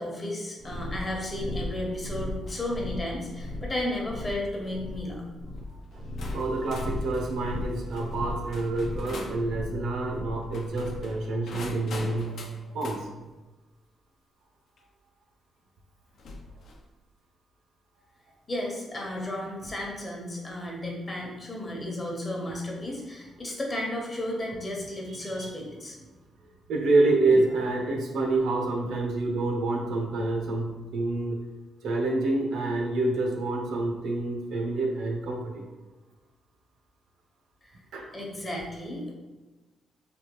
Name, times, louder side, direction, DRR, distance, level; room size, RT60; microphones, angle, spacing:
voice 1, 0.0-5.2 18.5-26.0 37.6-37.8 38.1-39.1, left 1 dB, 25° left, -1 dB, 0.8 m, -33 dB
the cube sinte siniestro, 0.6-11.2, left 1 dB, 35° right, 0.4 m, -36 dB
sound 1, 2.5-2.8 3.3-3.6 4.4-4.7 5.6-5.7 6.2-9.4 10.4-13.0 14.8-14.9 16.2-16.9, left 3 dB, 65° left, 0.5 m, -44 dB
voice 2, 6.3-13.1 25.4-25.5 26.4-31.4 31.8-35.6 37.9-38.1, right 2 dB, 85° right, 1 dB, 0.7 m, -27 dB
3.4 x 2.3 x 2.9 m, 1.2 s
cardioid pair, 105°, 0 cm